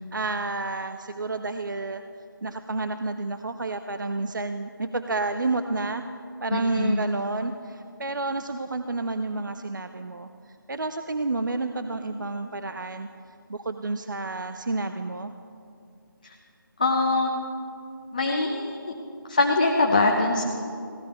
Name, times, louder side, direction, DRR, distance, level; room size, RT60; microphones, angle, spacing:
voice 1, 0.0-2.0 2.4-6.0 6.4-10.3 10.7-13.1 13.5-15.3, right 3 dB, 60° right, 8 dB, 0.5 m, -30 dB
voice 2, 6.5-7.0 16.8-17.3 18.1-18.9 19.3-20.4, left 2 dB, 20° left, 1 dB, 0.5 m, -23 dB
15.5 x 12.0 x 4.4 m, 2.5 s
figure-of-eight pair, 160°, 12 cm